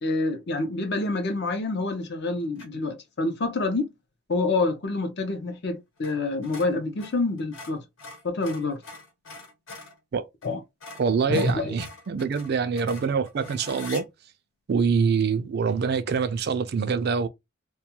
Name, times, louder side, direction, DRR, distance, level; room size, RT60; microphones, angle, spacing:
voice 1, 0.0-3.9 4.3-7.8 8.2-8.8 10.4-10.6 11.3-11.8, left 2 dB, 50° left, 0.6 m, -27 dB
sound 1, 2.6-2.9 6.0-6.2 6.4-10.0 10.4-10.5 10.8-14.0, left 3 dB, 65° left, 1.0 m, -43 dB
voice 2, 11.0-14.1 14.7-17.3, right 5 dB, 50° right, 0.3 m, -25 dB
2.3 x 2.3 x 2.9 m
head